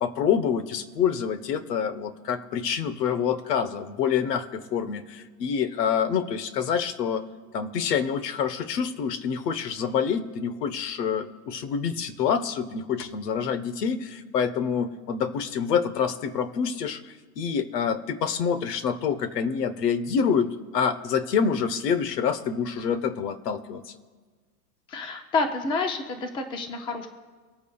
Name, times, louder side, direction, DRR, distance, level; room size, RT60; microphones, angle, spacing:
voice 1, 0.0-7.2 7.5-23.9, left 7 dB, 80° left, 13 dB, 1.1 m, -27 dB
voice 2, 24.9-27.1, left 3 dB, 10° left, 6 dB, 0.5 m, -28 dB
24.5 x 8.4 x 2.3 m, 1.4 s
supercardioid pair, 145°, 48 cm